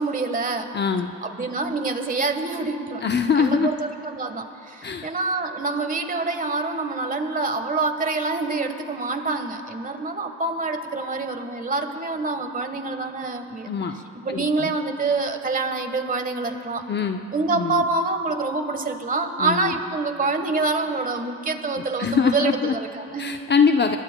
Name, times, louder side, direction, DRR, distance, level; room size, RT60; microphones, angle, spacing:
voice 1, 0.0-0.7 1.2-3.0 3.4-3.8 4.0-13.7 14.1-16.8 17.3-23.3, right 3 dB, 25° right, 7 dB, 1.4 m, -26 dB
voice 2, 0.7-1.1 3.0-3.7 4.8-5.1 13.7-13.9 14.3-14.7 16.9-17.2 17.5-17.8 19.4-19.7 22.0-22.7 23.2-24.0, left 6 dB, 35° left, 5 dB, 0.7 m, -22 dB
26.5 x 21.5 x 2.3 m, 2.7 s
cardioid pair, 90°, 30 cm